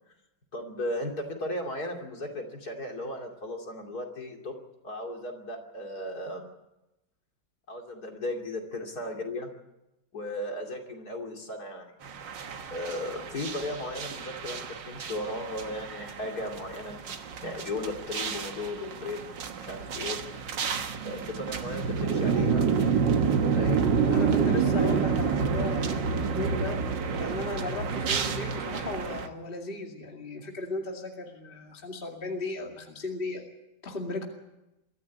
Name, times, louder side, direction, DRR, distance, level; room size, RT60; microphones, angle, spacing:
voice 1, 0.5-4.5 4.8-6.4 7.7-9.5 10.1-11.9 12.7-17.0 17.4-19.2 19.5-20.4 21.0-22.7 23.4-23.9, left 1 dB, 50° left, 2 dB, 3.2 m, -36 dB
sound 1, 12.0-29.3, right 6 dB, 65° right, 2.0 m, -29 dB
voice 2, 24.1-26.8 27.2-33.4 33.8-34.3, left 2 dB, 25° left, 1 dB, 2.5 m, -36 dB
23.5 x 14.0 x 9.6 m, 0.96 s
omnidirectional pair, 2.2 m